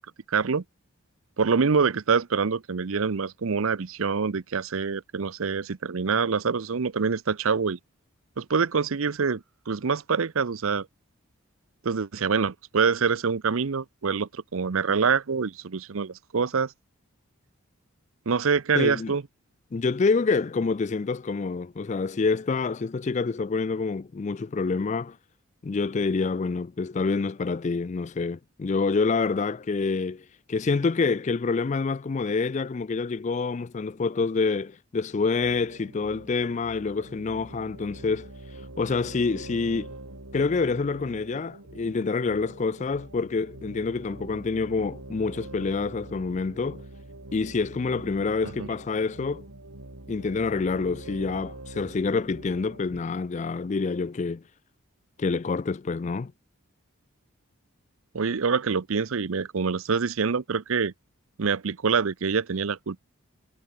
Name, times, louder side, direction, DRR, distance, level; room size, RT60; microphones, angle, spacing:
voice 1, 0.3-0.6 1.4-7.8 8.4-10.9 11.8-16.7 18.3-19.2 48.6-48.7 58.1-60.9 61.4-63.0, right 5 dB, 70° right, 0.6 m, -25 dB
voice 2, 18.7-19.1 19.7-25.2 25.6-38.3 38.8-39.9 40.3-46.8 47.3-49.4 50.1-54.4 55.2-56.3, left 4 dB, 35° left, 0.3 m, -27 dB
sound 1, 35.4-53.0, right 2 dB, 90° right, 3.0 m, -44 dB
head